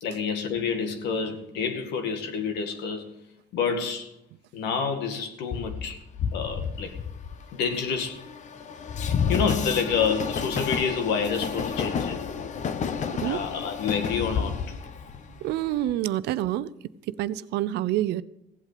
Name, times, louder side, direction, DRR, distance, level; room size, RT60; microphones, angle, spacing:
voice 1, 0.0-3.1 3.5-4.1 4.5-6.0 6.3-6.9 7.5-8.2 9.3-12.2 13.2-14.6, left 6 dB, 85° left, 2.0 m, -28 dB
Train, 5.5-15.9, left 6 dB, 45° left, 1.0 m, -31 dB
voice 2, 15.4-16.7 17.1-18.2, right 13 dB, 80° right, 0.6 m, -27 dB
16.0 x 8.2 x 6.7 m
cardioid pair, 110°, 17 cm